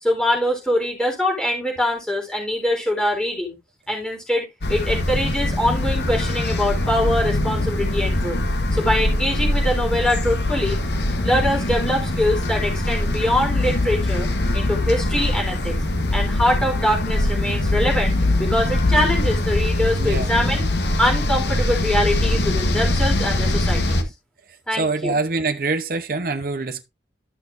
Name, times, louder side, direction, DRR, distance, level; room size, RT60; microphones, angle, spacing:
voice 1, 0.0-3.6 3.9-8.4 8.7-10.8 11.2-14.3 14.5-15.7 16.1-20.6 21.0-24.0 24.7-25.1, left 1 dB, 5° left, 4.0 m, -23 dB
sound 1, 4.6-24.0, left 1 dB, 70° left, 1.4 m, -22 dB
voice 2, 20.0-20.3 24.8-26.8, right 3 dB, 55° right, 0.8 m, -24 dB
13.5 x 6.3 x 2.6 m
head